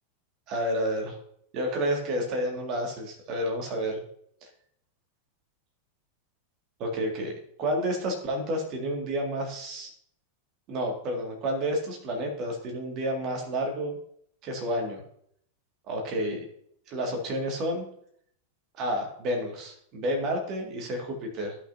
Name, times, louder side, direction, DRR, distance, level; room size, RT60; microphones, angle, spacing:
voice 1, 0.5-1.2 1.5-4.0 6.8-7.3 7.6-9.9 10.7-14.0 14.4-15.0 15.9-16.4 16.9-17.8 18.8-21.6, equal, 40° right, 1 dB, 2.1 m, -30 dB
15.5 x 5.8 x 2.7 m, 0.66 s
figure-of-eight pair, 90°, 0 cm